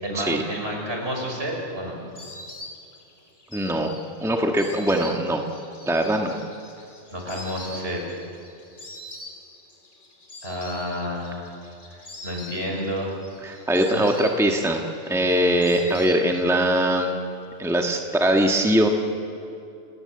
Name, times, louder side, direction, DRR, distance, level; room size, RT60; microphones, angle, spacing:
voice 1, 0.0-2.0 7.1-8.0 10.4-11.5 12.2-13.1 13.5-13.7 13.9-14.1 15.6-15.9, equal, 55° right, 0 dB, 6.0 m, -30 dB
Insect, 1.0-16.7 17.0-17.8, left 1 dB, 80° left, 3.5 m, -44 dB
voice 2, 3.5-5.4 5.9-6.4 13.4-17.2 17.6-18.9, right 1 dB, ahead, 2 dB, 1.5 m, -22 dB
30.0 x 19.0 x 7.8 m, 2.7 s
omnidirectional pair, 1.2 m